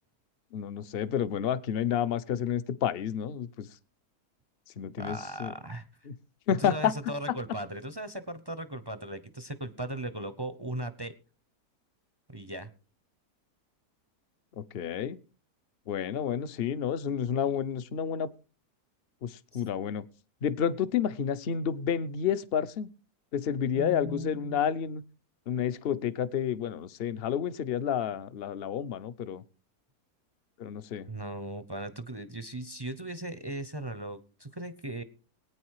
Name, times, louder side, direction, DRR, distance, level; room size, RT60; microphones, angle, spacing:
voice 1, 0.5-3.7 4.8-5.5 6.1-6.2 6.5-6.9 14.6-15.2 15.9-18.3 19.2-20.0 20.4-22.9 23.3-25.0 25.5-29.4 30.6-31.1, left 8 dB, 45° left, 15 dB, 0.8 m, -30 dB
voice 2, 5.0-5.9 6.6-11.1 12.3-12.7 19.5-19.6 23.7-24.7 31.1-35.0, right 1 dB, 25° right, 12 dB, 0.6 m, -38 dB
19.0 x 9.5 x 4.8 m, 0.36 s
omnidirectional pair, 1.8 m